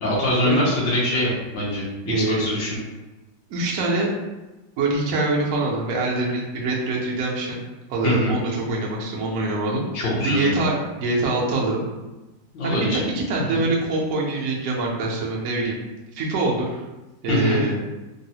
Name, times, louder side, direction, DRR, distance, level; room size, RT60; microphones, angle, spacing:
voice 1, 0.0-2.8 8.0-8.4 9.9-10.5 12.5-13.0 13.5-13.6 17.3-17.6, left 1 dB, 80° left, -6 dB, 1.5 m, -23 dB
voice 2, 2.1-2.5 3.5-4.1 4.8-7.6 7.9-9.9 10.2-11.8 12.6-15.8 16.1-16.8 17.2-17.8, right 2 dB, 65° right, -3 dB, 0.8 m, -24 dB
3.8 x 2.0 x 2.7 m, 1.1 s
omnidirectional pair, 2.0 m